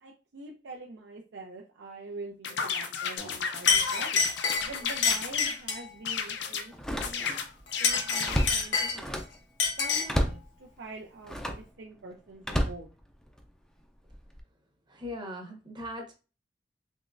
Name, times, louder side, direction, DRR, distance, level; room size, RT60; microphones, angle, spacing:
voice 1, 0.0-4.2 4.6-7.2 7.8-9.1 9.8-12.9, right 3 dB, 85° right, 0.6 m, -45 dB
sound 1, 2.4-5.6 6.0-6.7 7.0-8.6, left 6 dB, 70° left, 0.5 m, -33 dB
Chink clink, 3.2-3.4 3.7-5.9 7.7-9.2 9.6-10.2, left 5 dB, 90° left, 1.0 m, -27 dB
Slam, 4.6-4.8 5.3-5.4 6.7-7.5 7.9-9.4 10.1-10.5 11.2-11.7 12.4-13.5 14.1-14.4, equal, 5° left, 0.4 m, -31 dB
voice 2, 14.9-16.1, left 1 dB, 25° right, 0.7 m, -39 dB
3.6 x 3.0 x 2.5 m
head